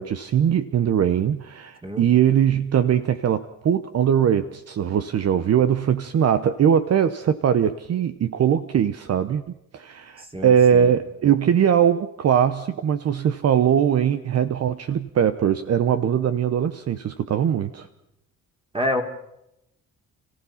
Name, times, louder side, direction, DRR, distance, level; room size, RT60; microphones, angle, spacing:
voice 1, 0.0-9.4 9.7-17.9, right 8 dB, 55° right, 11 dB, 0.9 m, -21 dB
voice 2, 10.3-11.0 18.7-19.0, left 1 dB, 20° right, 4 dB, 2.9 m, -27 dB
30.0 x 15.5 x 5.7 m, 0.84 s
cardioid pair, 90°, 30 cm